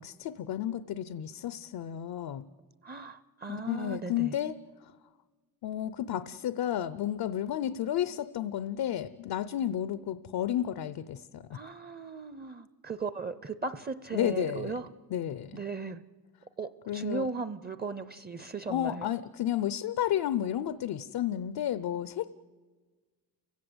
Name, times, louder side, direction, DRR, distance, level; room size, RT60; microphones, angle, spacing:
voice 1, 0.0-2.5 3.5-4.6 4.8-4.9 5.6-11.6 14.1-14.7 15.1-15.6 16.9-17.3 18.7-22.3, left 11 dB, 80° left, 14 dB, 0.7 m, -32 dB
voice 2, 2.8-4.3 11.5-14.9 15.5-16.0 16.6-19.1, right 4 dB, 25° right, 14 dB, 0.6 m, -37 dB
30.0 x 16.0 x 7.9 m, 1.4 s
cardioid pair, 115°, 37 cm